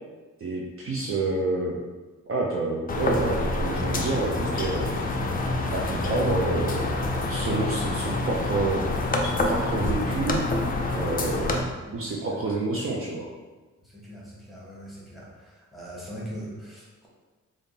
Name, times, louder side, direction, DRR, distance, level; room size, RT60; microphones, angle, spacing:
voice 1, 0.4-1.8 2.3-4.9 5.7-6.9 7.3-8.8 9.2-10.4 10.9-11.6 11.9-13.3, right 2 dB, 45° right, -2 dB, 0.5 m, -28 dB
sound 1, 2.9-11.6, left 2 dB, 30° left, 0.4 m, -27 dB
voice 2, 11.8-12.4 13.8-17.1, equal, ahead, -6 dB, 1.1 m, -41 dB
3.5 x 2.5 x 3.9 m, 1.2 s
wide cardioid pair, 145°, 31 cm